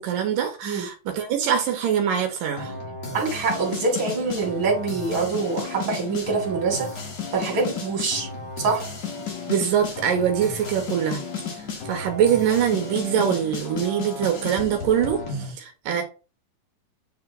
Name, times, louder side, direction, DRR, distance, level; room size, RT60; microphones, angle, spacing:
voice 1, 0.0-2.7 9.5-11.2 11.6-16.0, right 8 dB, 80° right, 2.6 m, -23 dB
sound 1, 2.6-15.5, left 4 dB, 50° left, 1.4 m, -33 dB
voice 2, 3.1-7.0 7.3-8.3 8.6-8.9, right 4 dB, 40° right, 3.1 m, -25 dB
8.9 x 3.5 x 3.3 m
omnidirectional pair, 3.9 m